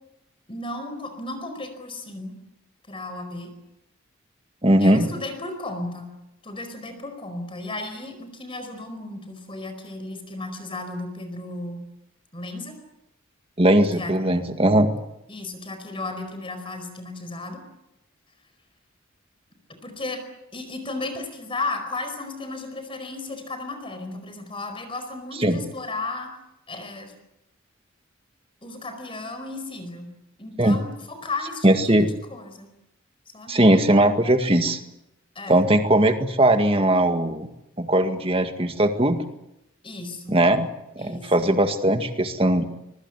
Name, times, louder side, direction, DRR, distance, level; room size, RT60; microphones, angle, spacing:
voice 1, 0.5-2.3 2.9-3.5 4.8-6.1 6.4-11.8 12.3-12.7 13.9-14.1 15.3-17.6 19.8-20.2 20.5-26.3 26.7-27.1 28.6-30.1 30.4-32.7 33.3-33.6 35.3-35.6 39.8-40.4 41.0-41.5, left 2 dB, 25° left, 7 dB, 4.8 m, -34 dB
voice 2, 4.6-5.1 13.6-14.9 25.4-25.6 30.6-30.8 31.6-32.1 33.5-34.8 35.5-37.5 37.8-39.2 40.3-40.7 41.0-42.7, right 1 dB, 25° right, 7 dB, 2.0 m, -19 dB
25.0 x 23.5 x 8.1 m, 0.87 s
head